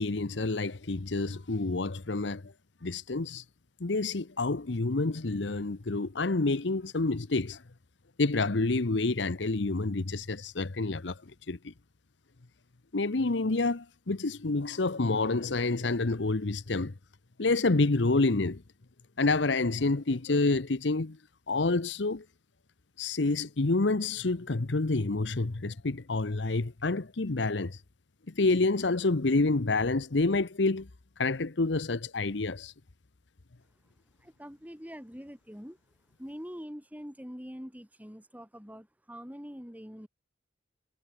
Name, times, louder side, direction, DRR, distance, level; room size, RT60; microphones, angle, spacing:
voice 1, 0.0-2.4 2.8-3.4 3.8-7.6 8.2-11.2 11.5-11.7 12.9-16.9 17.4-18.6 19.2-21.2 21.5-22.2 23.0-27.8 28.4-30.9 31.2-32.7, left 3 dB, 75° left, 1.0 m, -28 dB
voice 2, 34.2-35.8 36.2-40.1, equal, 10° right, 6.1 m, -44 dB
head